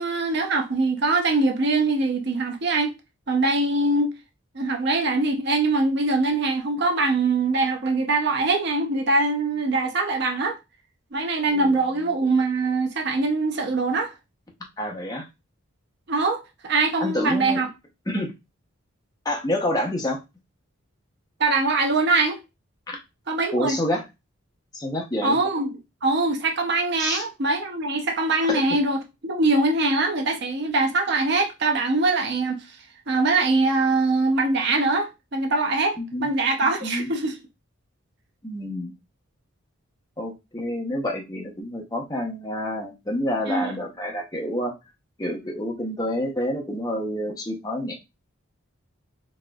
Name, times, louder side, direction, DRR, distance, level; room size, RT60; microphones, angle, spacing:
voice 1, 0.0-2.9 3.3-4.1 4.5-10.6 11.1-14.1 16.1-17.7 21.4-22.4 23.3-23.8 25.2-32.7 33.1-37.4 43.5-43.7, right 3 dB, 50° right, 0.5 m, -23 dB
voice 2, 11.5-11.8 14.8-15.2 17.0-17.6 18.1-18.3 19.2-20.2 22.9-23.0 23.5-24.0 24.7-25.4 27.0-27.2 28.5-28.8 36.0-36.3 36.8-37.1 38.4-38.9 40.2-44.7 45.2-48.0, left 1 dB, 15° left, 0.6 m, -28 dB
4.1 x 2.5 x 2.2 m
head